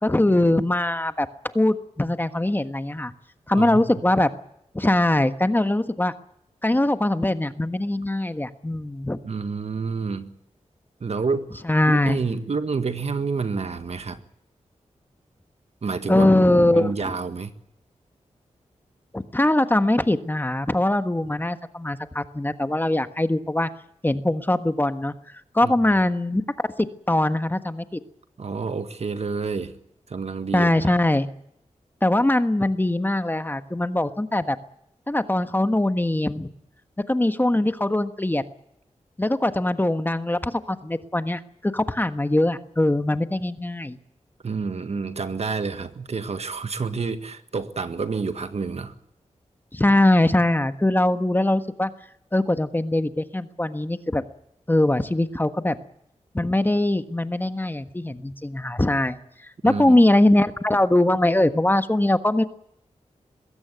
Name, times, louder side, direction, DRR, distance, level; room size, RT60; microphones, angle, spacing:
voice 1, 0.0-3.1 3.5-4.3 4.7-6.1 6.6-9.2 11.6-12.2 16.1-17.1 19.1-23.7 24.0-25.1 25.5-28.0 30.5-31.3 32.0-34.6 35.1-36.5 37.1-38.4 39.2-44.0 49.7-51.9 52.3-54.2 54.7-55.7 56.3-59.2 59.6-62.4, left 1 dB, 15° left, 1.4 m, -22 dB
voice 2, 9.2-10.3 11.0-11.6 11.9-14.2 15.8-16.3 16.7-17.5 25.6-25.7 28.4-29.7 30.1-30.9 44.4-48.9 59.6-59.9, right 4 dB, 60° right, 1.7 m, -28 dB
22.0 x 16.0 x 9.6 m
wide cardioid pair, 80°, 12 cm